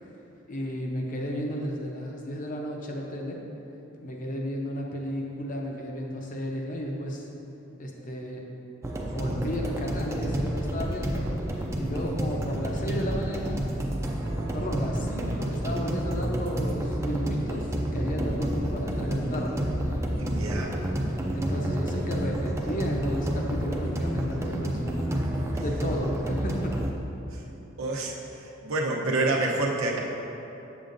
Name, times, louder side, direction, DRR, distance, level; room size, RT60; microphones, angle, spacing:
voice 1, 0.5-3.4 4.0-7.3 7.8-8.4 9.0-11.2 11.8-13.6 14.3-19.6 21.3-25.1 25.6-26.8, equal, 40° left, 0 dB, 0.7 m, -33 dB
sound 1, 8.8-26.9, right 1 dB, 15° right, 0.4 m, -29 dB
voice 2, 20.2-20.7 25.5-25.6 27.8-30.0, right 2 dB, 85° right, -1 dB, 0.8 m, -28 dB
7.2 x 7.0 x 2.6 m, 3.0 s
head